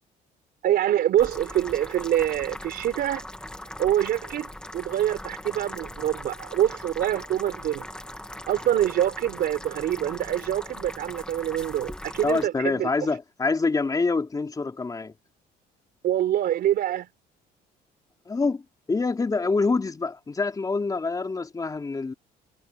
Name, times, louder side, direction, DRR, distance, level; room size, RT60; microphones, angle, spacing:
voice 1, 0.6-3.2 3.8-4.5 4.7-7.9 8.5-12.9 16.0-17.1, right 11 dB, 65° right, 4.2 m, -25 dB
sound 1, 1.2-12.5, left 1 dB, 5° left, 1.9 m, -40 dB
voice 2, 12.2-15.1 18.3-18.6 18.9-22.1, left 3 dB, 20° left, 3.3 m, -26 dB
cardioid pair, 110°, 17 cm